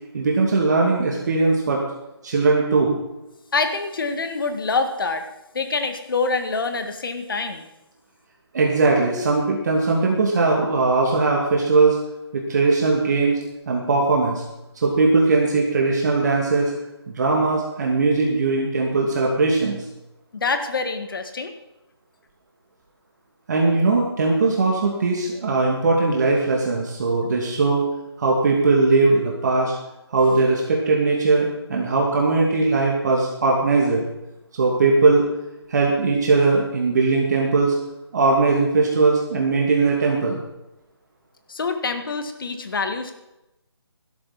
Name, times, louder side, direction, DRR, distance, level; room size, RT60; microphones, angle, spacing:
voice 1, 0.1-1.8 2.2-3.0 8.5-12.0 12.3-13.4 13.7-14.4 14.8-16.7 17.1-19.8 23.5-27.8 28.2-29.7 30.1-34.0 34.6-35.2 35.7-37.8 38.1-40.4, right 3 dB, 40° right, -2 dB, 2.4 m, -19 dB
voice 2, 3.5-5.3 5.5-7.7 20.3-21.5 41.5-43.2, left 4 dB, 50° left, 7 dB, 1.8 m, -25 dB
17.0 x 12.5 x 4.2 m, 0.94 s
figure-of-eight pair, 160°, 14 cm